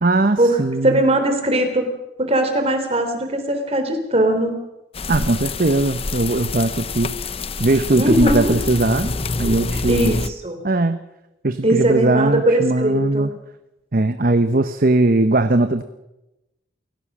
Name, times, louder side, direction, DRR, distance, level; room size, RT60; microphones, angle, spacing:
voice 1, 0.0-1.0 5.1-7.2 7.6-10.1 10.6-11.0 11.4-13.3 13.9-15.8, right 2 dB, 50° right, 9 dB, 1.0 m, -19 dB
voice 2, 0.8-1.9 2.2-4.6 8.0-8.5 9.9-10.6 11.6-13.3, right 1 dB, 35° right, 6 dB, 3.6 m, -20 dB
sound 1, 4.9-10.3, left 3 dB, 30° left, 0.8 m, -26 dB
28.5 x 17.0 x 6.2 m, 0.95 s
head